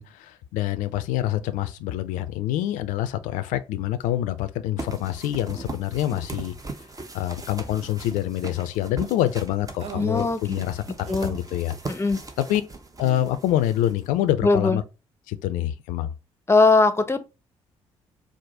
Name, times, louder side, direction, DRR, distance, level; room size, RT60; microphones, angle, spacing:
voice 1, 0.0-6.5 7.1-10.8 11.2-12.0 12.4-12.6 13.0-14.8 15.3-16.1, left 13 dB, 65° left, 0.5 m, -26 dB
sound 1, 4.8-14.3, right 3 dB, 25° right, 0.9 m, -39 dB
sound 2, 9.8-10.2 11.1-11.3 13.0-13.4, right 7 dB, 45° right, 0.6 m, -39 dB
voice 2, 10.0-10.6 11.1-11.4 11.9-12.2 14.4-14.8 16.5-17.2, left 3 dB, 20° left, 0.7 m, -20 dB
4.8 x 2.1 x 3.9 m
figure-of-eight pair, 45°, 14 cm